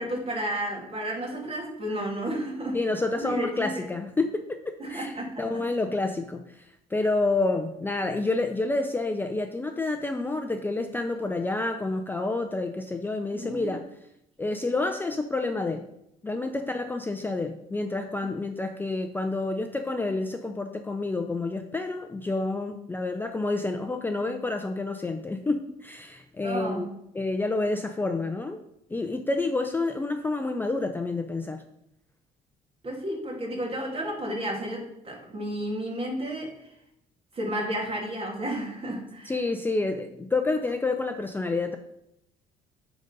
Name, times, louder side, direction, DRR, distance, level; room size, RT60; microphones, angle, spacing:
voice 1, 0.0-2.8 3.1-3.8 4.8-5.6 13.3-13.7 26.4-26.9 32.8-36.5 37.3-39.4, right 1 dB, 35° right, -1 dB, 2.6 m, -32 dB
voice 2, 2.7-13.8 14.4-15.9 16.2-26.9 27.1-28.6 28.9-31.6 39.2-41.8, left 2 dB, 10° left, 6 dB, 0.5 m, -29 dB
9.0 x 4.0 x 5.2 m, 0.80 s
cardioid pair, 110°, 17 cm